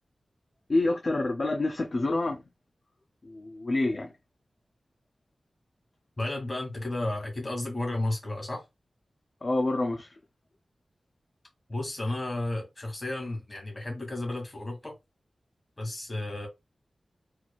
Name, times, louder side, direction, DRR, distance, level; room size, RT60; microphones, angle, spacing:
voice 1, 0.7-2.4 3.2-4.1 9.4-10.2, left 2 dB, 45° left, 0.6 m, -27 dB
voice 2, 6.2-8.6 11.7-15.0 15.8-16.5, left 2 dB, 25° left, 2.4 m, -33 dB
4.5 x 4.2 x 2.4 m
wide cardioid pair, 115°, 0 cm